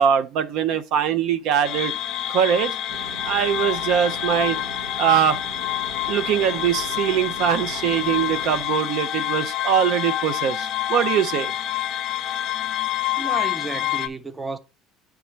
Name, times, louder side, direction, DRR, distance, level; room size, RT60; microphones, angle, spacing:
voice 1, 0.0-1.9 2.3-2.7 3.2-4.6 5.0-5.4 6.1-11.5, right 9 dB, 65° right, 0.4 m, -22 dB
sound 1, 1.6-14.1, left 12 dB, 50° left, 0.5 m, -27 dB
sound 2, 2.9-8.6, right 3 dB, 80° right, 1.0 m, -39 dB
voice 2, 13.2-14.6, right 3 dB, 15° right, 0.5 m, -32 dB
9.0 x 3.4 x 3.1 m
supercardioid pair, 115°, 0 cm